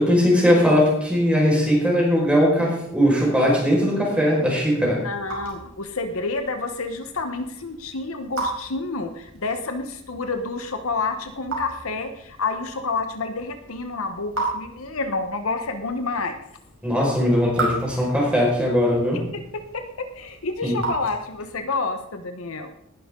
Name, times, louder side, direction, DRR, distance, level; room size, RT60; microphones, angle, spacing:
voice 1, 0.0-5.0 16.8-19.2 20.6-20.8, equal, 5° right, -3 dB, 5.1 m, -19 dB
Raindrop / Drip, 4.6-21.7, right 2 dB, 80° right, 5.1 m, -36 dB
voice 2, 5.0-16.4 19.7-22.7, left 3 dB, 75° left, 8 dB, 1.0 m, -29 dB
18.5 x 11.0 x 3.8 m, 0.78 s
head